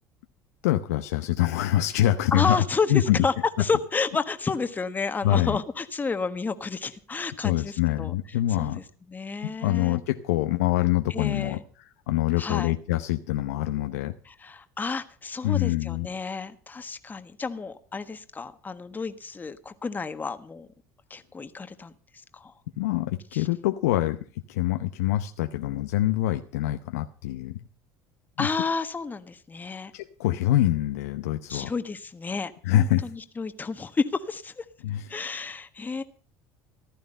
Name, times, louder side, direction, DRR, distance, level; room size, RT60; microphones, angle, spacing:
voice 1, 0.6-2.6 2.9-3.2 5.2-5.6 7.4-8.8 9.4-14.1 15.4-16.1 22.8-24.2 24.5-27.6 28.4-28.5 29.9-31.7 32.6-33.0 34.8-35.1, left 14 dB, 85° left, 8 dB, 0.8 m, -25 dB
voice 2, 2.3-8.1 8.6-10.0 11.1-11.6 12.4-12.7 14.2-20.7 21.1-21.9 22.3-22.5 23.3-23.5 28.4-29.9 31.5-34.6 35.1-36.0, left 4 dB, 20° left, 10 dB, 1.4 m, -31 dB
15.0 x 12.0 x 5.5 m, 0.40 s
supercardioid pair, 85°, 8 cm